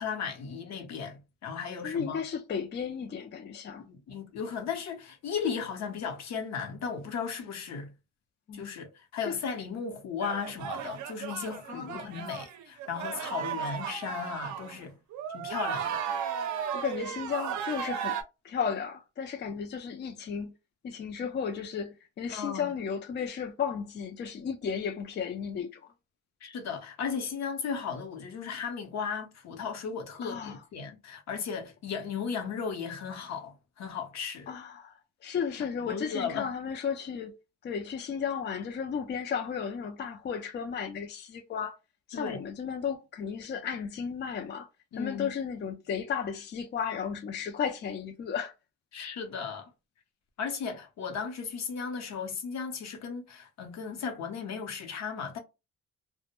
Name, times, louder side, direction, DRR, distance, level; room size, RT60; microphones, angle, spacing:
voice 1, 0.0-2.2 3.9-7.9 8.5-14.9 15.3-16.0 22.3-22.7 26.4-34.5 35.8-36.5 42.1-42.4 44.9-45.3 48.9-49.7 50.4-55.4, left 6 dB, 60° left, 0.8 m, -36 dB
voice 2, 1.8-3.9 8.5-8.7 9.2-9.4 11.6-12.3 13.6-14.0 16.0-16.2 16.7-18.2 18.4-20.5 20.8-25.9 30.2-30.7 34.5-34.9 35.2-37.4 37.6-41.8 42.1-44.7 45.0-48.5, left 7 dB, 35° left, 0.4 m, -34 dB
sound 1, 10.2-14.8 15.1-18.2, right 8 dB, 70° right, 0.5 m, -35 dB
2.1 x 2.1 x 2.9 m
cardioid pair, 90°, 30 cm